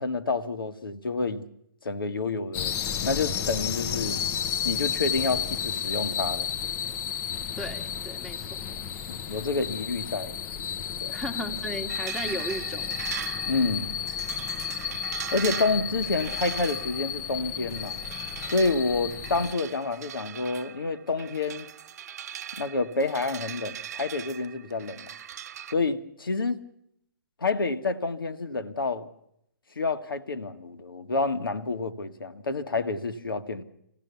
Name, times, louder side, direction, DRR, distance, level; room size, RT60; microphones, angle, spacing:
voice 1, 0.0-1.5 1.8-4.2 4.6-6.5 9.1-10.3 11.0-11.2 13.5-14.0 15.3-18.0 18.5-21.7 22.6-25.1 25.7-26.6 27.4-29.1 29.7-33.6, left 3 dB, 80° left, 1.7 m, -28 dB
sound 1, 2.5-19.5, left 8 dB, 20° left, 0.8 m, -32 dB
voice 2, 7.6-8.7 11.1-13.0, equal, 5° left, 1.4 m, -35 dB
sound 2, 11.9-25.7, right 9 dB, 45° right, 0.7 m, -40 dB
26.5 x 16.5 x 7.0 m
figure-of-eight pair, 140°, 12 cm